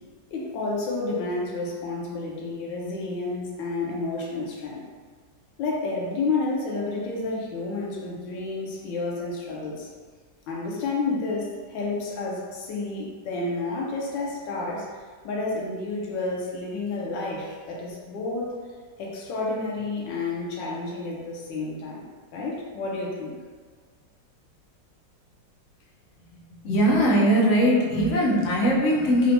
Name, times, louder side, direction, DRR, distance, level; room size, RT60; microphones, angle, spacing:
voice 1, 0.3-4.8 5.6-9.9 10.5-14.9 15.2-18.6 19.0-23.4, left 3 dB, 85° left, -3 dB, 1.3 m, -30 dB
voice 2, 26.6-29.3, equal, 70° left, -4 dB, 0.7 m, -20 dB
4.0 x 2.1 x 2.7 m, 1.5 s
omnidirectional pair, 2.0 m